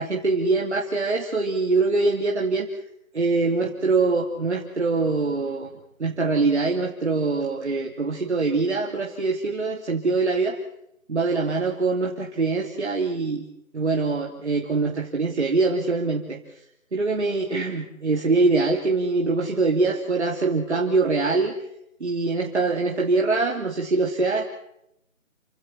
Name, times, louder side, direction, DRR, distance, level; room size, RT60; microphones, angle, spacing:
voice 1, 0.0-2.7 3.1-5.7 6.0-10.6 11.1-13.5 13.7-16.4 16.9-21.6 22.0-24.4, right 3 dB, 55° right, 1 dB, 3.1 m, -23 dB
29.0 x 17.0 x 5.8 m, 0.77 s
figure-of-eight pair, 175°, 41 cm